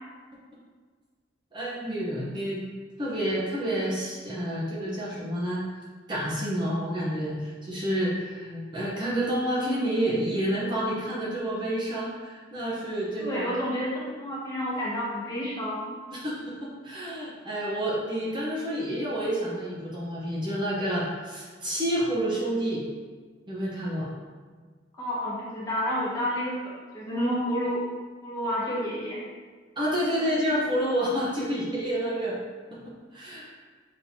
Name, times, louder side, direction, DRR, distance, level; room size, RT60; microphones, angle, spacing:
voice 1, 1.5-2.6 3.0-5.6 6.1-13.5 16.1-22.8 23.5-24.1 29.8-32.4 32.7-33.5, equal, 25° right, -7 dB, 0.8 m, -29 dB
voice 2, 13.2-15.9 25.0-27.8 28.2-29.2, equal, 20° left, -8 dB, 1.2 m, -30 dB
5.8 x 3.2 x 2.8 m, 1.5 s
head